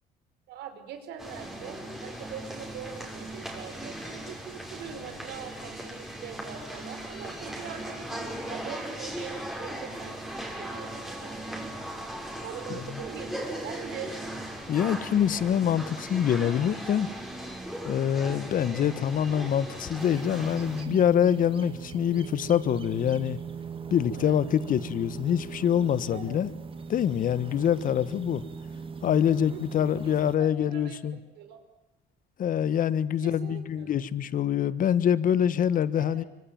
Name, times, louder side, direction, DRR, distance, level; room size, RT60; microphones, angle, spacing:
voice 1, 0.5-11.5 12.4-14.1 24.1-24.4 26.1-26.4 29.5-31.0 31.3-31.6 33.2-33.9 36.0-36.2, right 8 dB, 80° right, 8 dB, 4.9 m, -43 dB
sound 1, 1.2-20.8, right 1 dB, ahead, 6.5 m, -38 dB
voice 2, 12.7-13.0 14.7-17.1 17.8-23.4 23.9-26.5 26.9-28.4 29.0-31.2 32.4-36.2, left 9 dB, 55° left, 16 dB, 1.4 m, -25 dB
sound 2, 20.0-30.4, right 6 dB, 30° right, 2.4 m, -40 dB
25.0 x 25.0 x 9.1 m, 0.89 s
cardioid pair, 110°, 17 cm